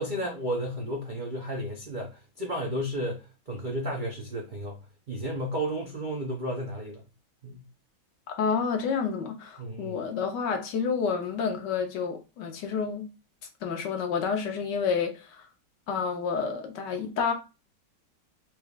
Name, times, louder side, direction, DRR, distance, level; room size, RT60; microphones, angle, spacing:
voice 1, 0.0-4.8 5.1-7.0 7.4-7.6 9.6-10.0, equal, 60° right, 0.5 m, -33 dB
voice 2, 8.3-13.1 13.6-15.5 15.9-17.3, left 6 dB, 75° left, 1.4 m, -29 dB
4.5 x 3.3 x 2.3 m
omnidirectional pair, 2.0 m